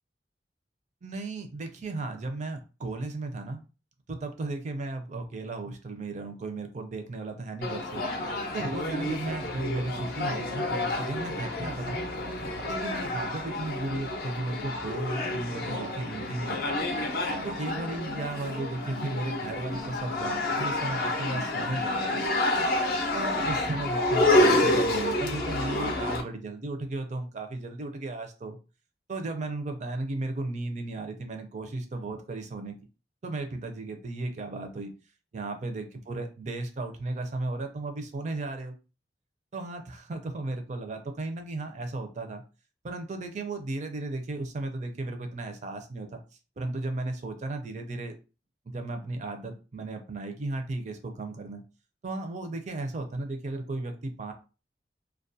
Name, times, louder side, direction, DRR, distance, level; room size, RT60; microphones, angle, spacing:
voice 1, 1.0-3.6 4.1-8.0 8.5-12.0 12.6-16.9 17.4-22.2 23.1-28.6 29.1-32.7 33.2-34.9 35.3-38.8 39.5-42.4 42.8-46.2 46.6-48.1 48.7-51.6 52.0-54.3, right 2 dB, 45° right, 6 dB, 0.4 m, -35 dB
sound 1, 7.6-26.2, left 2 dB, 55° left, 0.5 m, -29 dB
2.2 x 2.1 x 2.6 m, 0.32 s
head